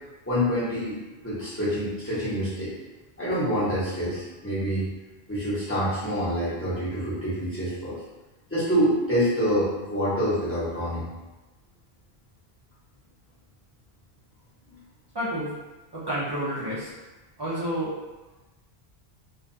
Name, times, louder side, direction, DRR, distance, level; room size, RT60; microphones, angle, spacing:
voice 1, 0.3-1.0 1.2-2.7 3.2-4.9 5.3-8.0 8.5-11.1 14.6-14.8, equal, 15° left, -12 dB, 0.8 m, -26 dB
voice 2, 15.1-15.5 15.9-16.9 17.4-17.9, equal, 40° right, -9 dB, 0.3 m, -29 dB
2.3 x 2.2 x 2.6 m, 1.1 s
omnidirectional pair, 1.1 m